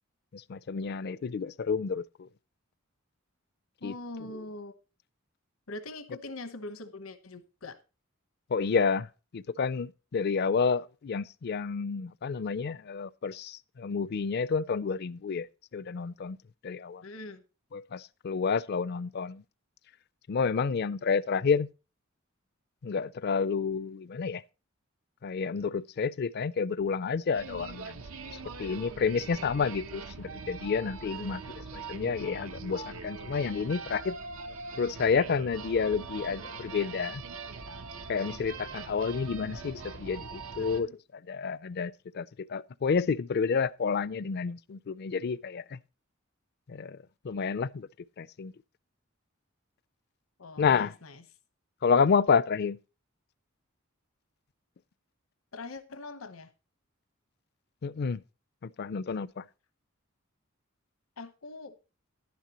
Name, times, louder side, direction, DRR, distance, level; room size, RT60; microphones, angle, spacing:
voice 1, 0.3-2.3 3.8-3.9 8.5-15.5 15.7-16.4 16.6-17.0 17.7-19.4 20.3-21.7 22.8-24.4 25.2-28.0 28.6-31.4 31.7-34.2 34.8-37.2 38.1-40.9 41.3-45.8 46.7-47.0 47.2-47.9 48.2-48.5 50.6-50.9 51.8-52.8 57.8-58.2 58.6-59.4, left 5 dB, 50° left, 0.4 m, -29 dB
voice 2, 3.8-4.7 5.7-7.8 17.0-17.4 31.0-31.4 40.6-40.9 50.4-51.2 55.5-56.5 61.2-61.7, left 2 dB, 80° left, 1.0 m, -43 dB
sound 1, 27.3-40.8, right 4 dB, 85° right, 0.9 m, -42 dB
11.0 x 10.5 x 2.9 m
head